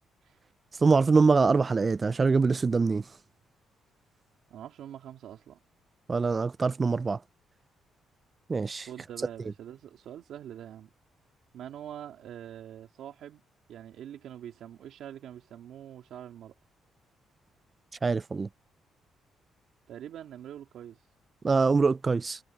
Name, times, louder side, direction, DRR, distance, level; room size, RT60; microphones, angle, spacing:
voice 1, 0.8-3.0 6.1-7.2 8.5-8.9 18.0-18.5 21.4-22.4, right 4 dB, 30° right, 0.3 m, -24 dB
voice 2, 4.5-5.6 8.9-10.9 11.5-13.4 13.7-16.5 19.9-21.0, right 10 dB, 75° right, 2.6 m, -44 dB
cardioid pair, 90°, 0 cm